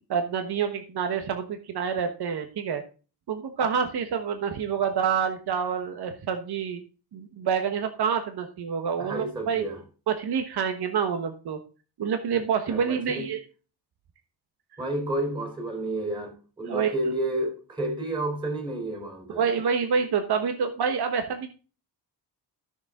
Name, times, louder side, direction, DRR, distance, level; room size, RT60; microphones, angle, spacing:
voice 1, 0.1-2.8 3.3-6.8 7.1-9.6 10.1-11.6 12.0-13.4 16.6-16.9 19.4-21.5, right 7 dB, 65° right, 1.3 m, -27 dB
voice 2, 9.0-9.8 12.7-13.3 14.8-19.4, right 1 dB, 10° right, 3.9 m, -31 dB
13.0 x 6.8 x 3.7 m
wide cardioid pair, 155°, 43 cm